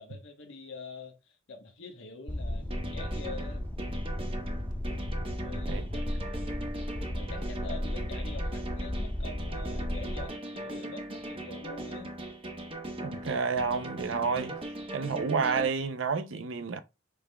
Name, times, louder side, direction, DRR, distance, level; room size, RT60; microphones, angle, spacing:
voice 1, 0.0-3.7 5.4-6.0 6.4-6.7 7.2-12.1, left 3 dB, 80° left, 1.1 m, -45 dB
sound 1, 2.3-10.3, left 1 dB, 5° left, 0.4 m, -34 dB
sound 2, 2.7-15.7, right 1 dB, 25° right, 0.9 m, -40 dB
voice 2, 13.0-14.5 14.9-16.8, right 5 dB, 75° right, 0.6 m, -30 dB
6.7 x 3.5 x 2.2 m
head